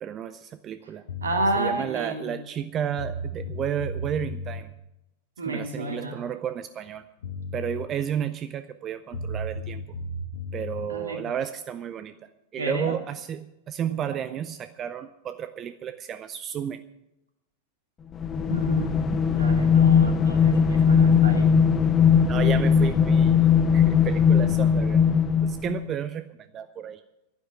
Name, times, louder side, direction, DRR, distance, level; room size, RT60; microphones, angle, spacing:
voice 1, 0.0-1.0 1.6-4.7 5.5-7.0 7.5-9.8 10.5-12.1 12.5-16.8 22.3-25.1 25.4-26.2 26.5-27.0, right 9 dB, 30° right, 12 dB, 0.6 m, -32 dB
sound 1, 1.1-1.6 2.6-2.7 3.0-4.6 6.9-7.0 7.2-7.9 9.1-10.9, left 1 dB, 65° left, 1.4 m, -34 dB
voice 2, 1.2-2.4 5.4-6.2 10.9-11.3 12.6-13.0 14.0-14.2 18.5-19.0 19.3-21.5, right 2 dB, 70° right, 4 dB, 2.4 m, -31 dB
sound 2, 18.1-25.8, left 7 dB, 25° left, 1.1 m, -19 dB
11.5 x 10.5 x 8.3 m, 0.90 s
figure-of-eight pair, 90°, 0 cm